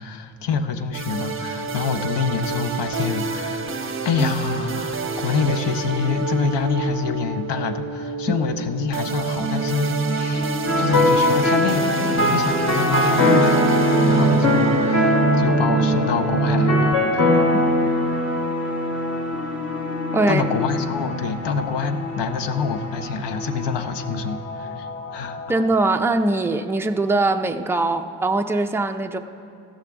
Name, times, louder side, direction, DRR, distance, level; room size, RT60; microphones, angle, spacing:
voice 1, 0.0-17.5 20.3-25.4, left 5 dB, 70° left, 9 dB, 0.8 m, -26 dB
sound 1, 0.9-16.9, right 4 dB, 30° right, 0.7 m, -25 dB
sound 2, 5.9-7.3 10.4-11.8 14.9-16.2 19.3-20.7, left 6 dB, 20° left, 0.8 m, -33 dB
sound 3, 10.7-25.6, left 1 dB, 35° left, 1.4 m, -23 dB
voice 2, 25.5-29.2, right 2 dB, 5° right, 5 dB, 0.3 m, -21 dB
15.5 x 13.0 x 3.6 m, 2.5 s
wide cardioid pair, 135°, 44 cm